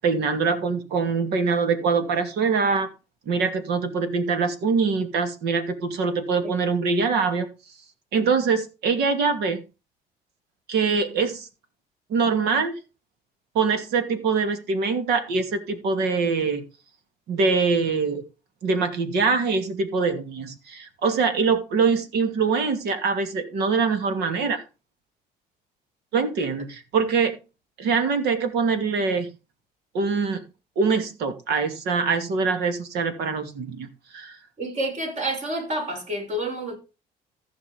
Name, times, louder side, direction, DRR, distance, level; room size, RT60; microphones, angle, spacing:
voice 1, 0.0-2.9 3.3-7.5 8.1-9.6 10.7-11.5 12.1-12.7 13.5-16.6 17.3-18.2 18.6-24.6 26.1-27.4 27.8-29.3 29.9-30.4 30.8-33.9 34.1-34.4, right 5 dB, 75° right, 2.6 m, -23 dB
voice 2, 34.6-36.8, right 1 dB, 45° right, 6.1 m, -29 dB
15.0 x 6.0 x 5.2 m
cardioid pair, 110°, 17 cm